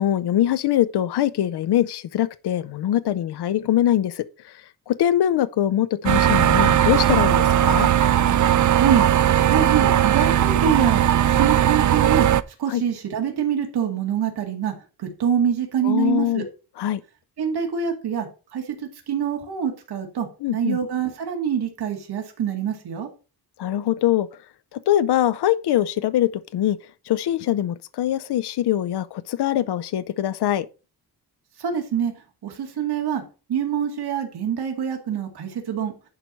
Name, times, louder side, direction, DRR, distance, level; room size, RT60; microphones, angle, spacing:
voice 1, 0.0-4.2 4.9-7.9 12.7-12.8 15.8-16.4 16.8-17.0 20.4-20.8 23.6-24.3 24.7-26.8 27.1-30.7, left 12 dB, 80° left, 0.7 m, -22 dB
sound 1, 6.0-12.4, right 10 dB, 50° right, 0.5 m, -18 dB
voice 2, 8.7-9.1 9.5-12.3 12.6-14.7 15.0-16.4 17.4-18.3 18.5-20.3 20.5-23.1 31.6-32.1 32.4-33.2 33.5-35.9, right 8 dB, 75° right, 2.2 m, -25 dB
11.0 x 4.6 x 5.3 m
wide cardioid pair, 140°, 39 cm